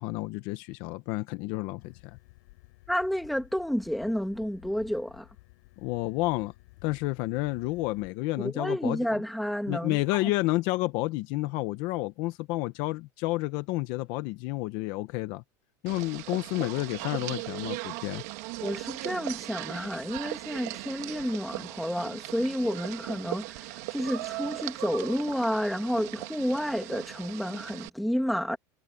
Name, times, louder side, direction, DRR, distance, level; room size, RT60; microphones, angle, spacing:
voice 1, 0.0-2.2 5.8-6.5 6.8-9.2 9.7-15.4 15.8-18.2, left 20 dB, 45° left, 0.8 m, -30 dB
sound 1, 1.8-8.1, left 24 dB, 65° left, 7.8 m, -54 dB
voice 2, 2.9-5.3 8.4-10.2 18.6-28.6, equal, ahead, 2.2 m, -30 dB
sound 2, 15.9-27.9, right 22 dB, 60° right, 2.3 m, -38 dB
supercardioid pair, 180°, 10 cm